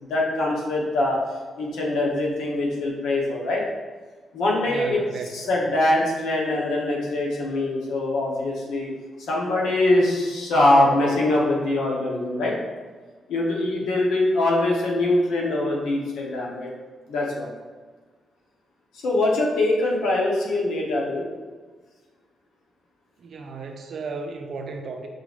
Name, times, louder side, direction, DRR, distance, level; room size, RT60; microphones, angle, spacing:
voice 1, 0.0-1.2 1.6-3.6 4.3-5.0 5.3-8.9 9.2-12.5 13.3-16.7 17.1-17.5 19.0-21.3, left 2 dB, 90° left, -3 dB, 1.0 m, -23 dB
voice 2, 4.6-5.5 23.2-25.1, right 4 dB, 60° right, 4 dB, 0.5 m, -34 dB
5.3 x 2.5 x 3.5 m, 1.4 s
cardioid pair, 115°, 0 cm